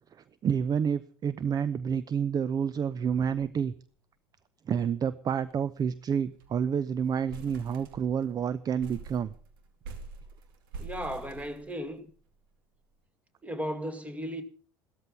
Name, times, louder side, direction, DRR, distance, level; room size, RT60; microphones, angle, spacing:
voice 1, 0.4-3.7 4.7-9.3, right 7 dB, 30° right, 0.7 m, -29 dB
sound 1, 3.1-4.8, right 1 dB, 85° right, 2.9 m, -57 dB
sound 2, 5.3-5.5 5.8-5.9 6.2-6.6 7.0-8.3 8.8-12.1, right 3 dB, 65° right, 2.4 m, -45 dB
voice 2, 10.8-12.1 13.4-14.4, equal, 10° right, 2.2 m, -35 dB
15.5 x 13.5 x 5.5 m
figure-of-eight pair, 65°, 12 cm